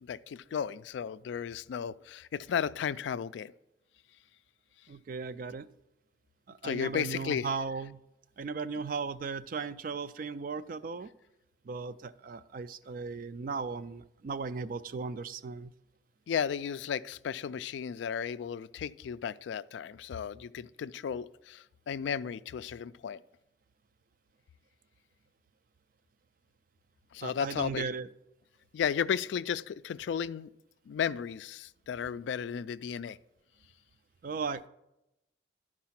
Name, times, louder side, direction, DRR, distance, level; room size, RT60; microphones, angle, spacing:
voice 1, 0.0-3.5 6.6-7.5 16.3-23.2 27.1-27.9 28.7-30.5 30.9-33.2, left 7 dB, 80° left, 15 dB, 0.3 m, -34 dB
voice 2, 4.9-5.7 6.5-8.0 8.4-11.1 11.7-15.7 27.2-28.1 34.2-34.7, right 4 dB, 50° right, 14 dB, 0.3 m, -37 dB
11.5 x 4.8 x 5.8 m, 0.90 s
head